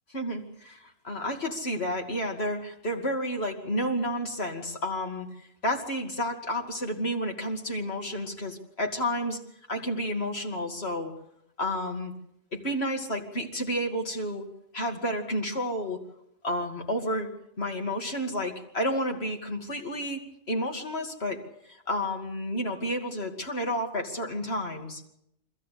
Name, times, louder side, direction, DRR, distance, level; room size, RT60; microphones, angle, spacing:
voice 1, 0.1-5.3 5.6-9.4 9.7-11.1 11.6-12.1 12.5-14.4 14.7-16.0 16.4-17.3 17.6-21.4 21.7-25.0, equal, 50° left, 2 dB, 2.8 m, -31 dB
25.5 x 15.0 x 8.4 m, 0.78 s
omnidirectional pair, 1.4 m